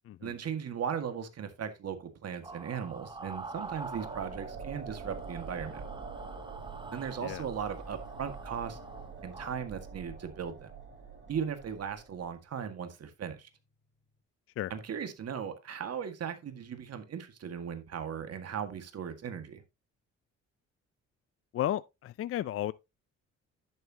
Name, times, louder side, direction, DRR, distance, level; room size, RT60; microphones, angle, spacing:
voice 1, 0.2-5.8 6.9-8.8 9.2-10.7 11.3-13.5 14.7-19.6, right 7 dB, 55° right, 1.8 m, -37 dB
sound 1, 2.4-4.7 5.0-9.5, right 3 dB, 15° right, 1.0 m, -46 dB
sound 2, 3.1-12.4, right 4 dB, 35° right, 3.9 m, -45 dB
sound 3, 6.5-14.2, left 3 dB, 70° left, 4.1 m, -63 dB
voice 2, 21.5-22.7, left 12 dB, 50° left, 0.4 m, -33 dB
10.5 x 7.5 x 2.8 m
cardioid pair, 90°, 30 cm